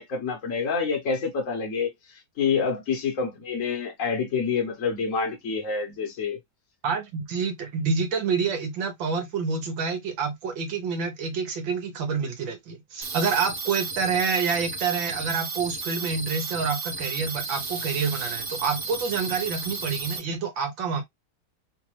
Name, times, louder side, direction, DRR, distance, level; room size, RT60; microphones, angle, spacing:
voice 1, 0.0-6.4, left 5 dB, 45° left, 1.3 m, -27 dB
voice 2, 6.8-21.0, right 5 dB, 70° right, 1.7 m, -28 dB
sound 1, 13.0-20.2, right 4 dB, 50° right, 0.7 m, -33 dB
3.9 x 2.5 x 3.0 m
omnidirectional pair, 2.2 m